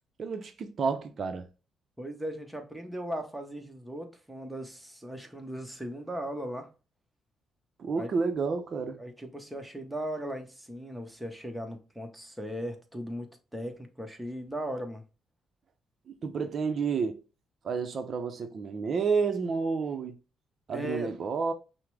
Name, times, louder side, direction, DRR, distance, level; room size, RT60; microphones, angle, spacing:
voice 1, 0.2-1.5 7.8-9.0 16.1-17.2 17.6-20.2 20.7-21.5, right 5 dB, 50° right, 0.6 m, -30 dB
voice 2, 2.0-6.7 8.0-8.1 9.0-15.0 20.7-21.2, equal, 5° right, 0.9 m, -38 dB
5.7 x 2.1 x 3.3 m
cardioid pair, 90°, 0 cm